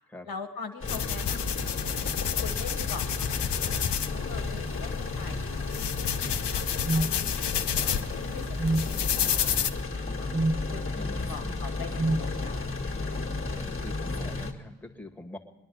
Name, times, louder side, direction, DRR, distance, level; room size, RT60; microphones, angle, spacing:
voice 1, 0.2-3.7 4.3-7.1 7.4-10.3 10.7-13.1, left 5 dB, 60° left, 4 dB, 1.5 m, -44 dB
sound 1, 0.8-14.5, left 3 dB, 30° left, 1.8 m, -33 dB
sound 2, 0.9-9.7, left 9 dB, 85° left, 0.8 m, -31 dB
sound 3, 6.8-7.1 8.6-8.9 10.3-10.6 12.0-12.3, right 2 dB, 20° right, 0.4 m, -26 dB
voice 2, 10.9-11.7 13.6-15.4, left 1 dB, 5° left, 1 dB, 1.7 m, -43 dB
22.0 x 10.5 x 5.4 m, 1.3 s
cardioid pair, 60°, 40 cm